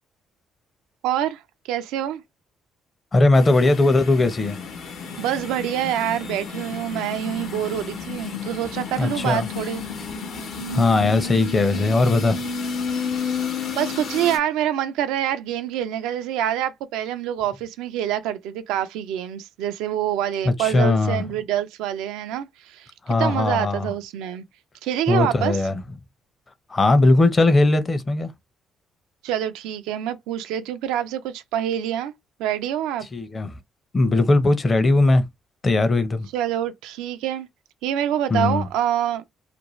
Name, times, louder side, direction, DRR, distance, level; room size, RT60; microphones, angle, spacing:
voice 1, 1.0-1.4 1.7-2.2 5.2-9.8 13.7-22.9 23.2-24.4 24.8-25.6 29.2-32.1 32.4-33.1 36.3-37.5 37.8-39.2, right 11 dB, 85° right, 0.4 m, -26 dB
voice 2, 3.1-4.6 9.0-9.5 10.7-12.4 20.4-21.2 23.1-23.9 25.1-25.8 26.7-28.3 33.1-33.5 33.9-35.2 35.6-36.3 38.3-38.6, left 2 dB, 30° left, 0.6 m, -19 dB
sound 1, 3.3-14.4, left 5 dB, 70° left, 0.8 m, -31 dB
2.5 x 2.2 x 3.1 m
supercardioid pair, 75°, 0 cm